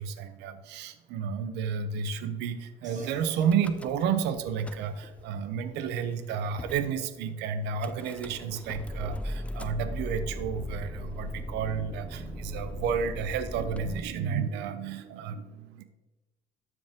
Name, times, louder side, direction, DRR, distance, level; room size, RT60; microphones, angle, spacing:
voice 1, 0.0-15.8, right 7 dB, 85° right, 10 dB, 0.8 m, -31 dB
sound 1, 2.8-12.7, right 2 dB, 45° right, 2.5 m, -56 dB
Car / Engine starting / Idling, 3.4-4.2 4.5-5.2 5.9-6.0 6.2-6.3 6.6-6.9 7.8-14.0, left 1 dB, 5° left, 0.5 m, -38 dB
12.5 x 4.8 x 3.6 m, 1.1 s
cardioid pair, 110°, 17 cm